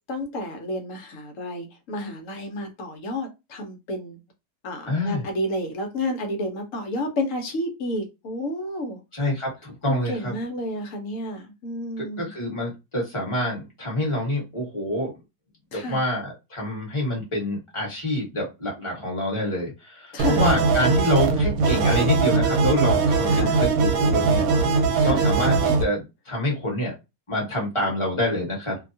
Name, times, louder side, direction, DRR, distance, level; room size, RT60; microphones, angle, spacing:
voice 1, 0.1-4.2 4.6-9.0 9.9-12.3 15.7-16.0 20.1-20.5 23.3-23.6 25.0-25.2, left 1 dB, 65° left, 1.0 m, -31 dB
voice 2, 4.9-5.2 9.1-10.3 12.0-15.1 15.7-24.5 25.0-26.9 27.3-28.8, left 1 dB, 20° left, 1.1 m, -26 dB
sound 1, 20.2-25.8, right 4 dB, 85° right, 1.1 m, -20 dB
2.7 x 2.2 x 2.6 m
omnidirectional pair, 1.6 m